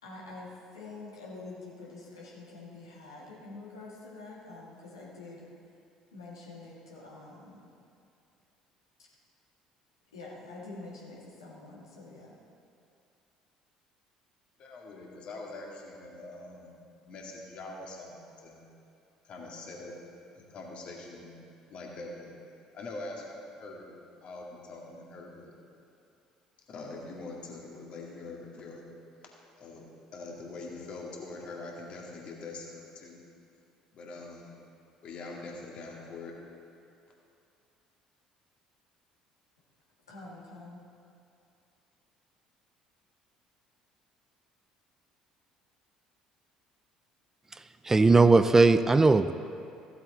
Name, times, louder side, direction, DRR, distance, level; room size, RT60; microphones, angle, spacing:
voice 1, 0.0-5.5 6.1-7.6 10.1-12.3 40.1-40.8, left 3 dB, 80° left, -5 dB, 2.0 m, -46 dB
voice 2, 14.6-16.7 17.1-18.7 19.2-20.0 20.3-21.4 21.7-22.3 22.7-23.9 24.2-25.5 26.7-28.9 29.6-29.9 30.1-33.2 33.9-34.5 35.0-36.4, left 3 dB, 50° left, -2 dB, 2.1 m, -43 dB
voice 3, 47.9-49.3, right 3 dB, 20° right, 11 dB, 0.4 m, -19 dB
15.0 x 7.9 x 4.0 m, 2.6 s
figure-of-eight pair, 55°, 2 cm